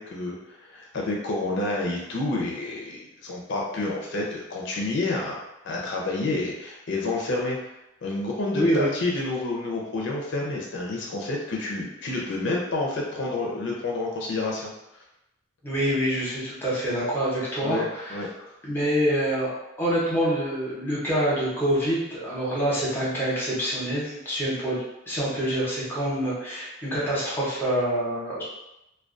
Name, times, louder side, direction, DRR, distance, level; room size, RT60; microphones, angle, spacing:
voice 1, 0.0-7.6 8.0-14.7 17.6-18.5, left 2 dB, 60° left, -2 dB, 0.4 m, -29 dB
voice 2, 8.5-8.9 15.6-18.2 18.6-19.5 19.8-28.4, equal, 10° left, -8 dB, 0.8 m, -26 dB
2.3 x 2.2 x 2.5 m, 0.88 s
head